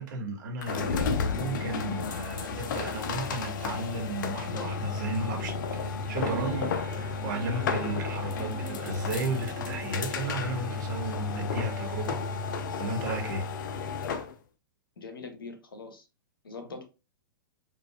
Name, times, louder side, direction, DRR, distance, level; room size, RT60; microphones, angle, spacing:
voice 1, 0.0-5.6 6.1-12.2 12.8-13.5, right 2 dB, 60° right, 1.3 m, -34 dB
sound 1, 0.6-14.3, left 5 dB, 60° left, 0.6 m, -32 dB
sound 2, 6.2-9.9, right 6 dB, 40° right, 0.6 m, -43 dB
voice 2, 15.0-16.1 16.4-16.9, left 4 dB, 85° left, 0.9 m, -42 dB
4.7 x 2.6 x 2.3 m
hypercardioid pair, 115°, 11 cm